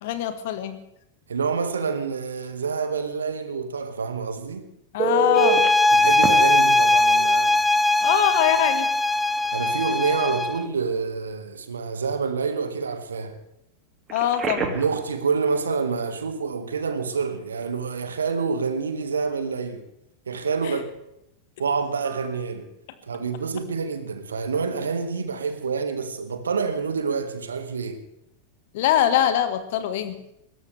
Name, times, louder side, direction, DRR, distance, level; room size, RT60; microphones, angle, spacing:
voice 1, 0.0-0.8 4.9-5.6 8.0-8.9 14.1-14.7 28.7-30.2, left 11 dB, 50° left, 1.7 m, -23 dB
voice 2, 1.3-4.7 5.9-7.6 9.5-13.4 14.6-19.8 20.3-20.9 21.6-22.7 23.1-28.0, right 5 dB, 70° right, 2.0 m, -27 dB
Telephone, 5.0-5.7 6.2-6.3 8.1-8.2 8.6-8.8 14.1-14.9 22.1-22.3, right 2 dB, 25° right, 2.5 m, -24 dB
sound 1, 5.4-10.6, left 2 dB, 10° left, 0.5 m, -20 dB
21.0 x 17.5 x 3.5 m
figure-of-eight pair, 90°, 0 cm